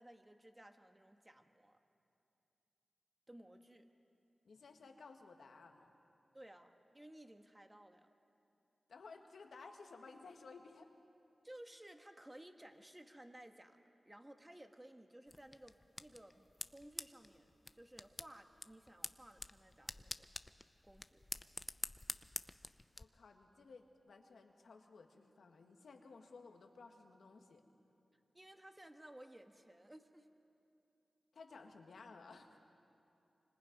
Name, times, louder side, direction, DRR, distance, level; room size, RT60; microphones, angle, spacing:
voice 1, 0.0-1.8 3.3-3.9 6.3-8.1 11.4-13.8 14.0-17.5 17.7-20.3 20.8-21.2 28.3-30.3, right 1 dB, 15° right, 5 dB, 1.7 m, -57 dB
voice 2, 4.4-5.9 8.9-10.9 23.0-27.6 31.3-32.6, left 4 dB, 85° left, 4 dB, 1.8 m, -57 dB
sound 1, 15.3-23.0, left 2 dB, 30° left, 0.6 m, -48 dB
26.0 x 26.0 x 5.3 m, 2.7 s
cardioid pair, 55°, 0 cm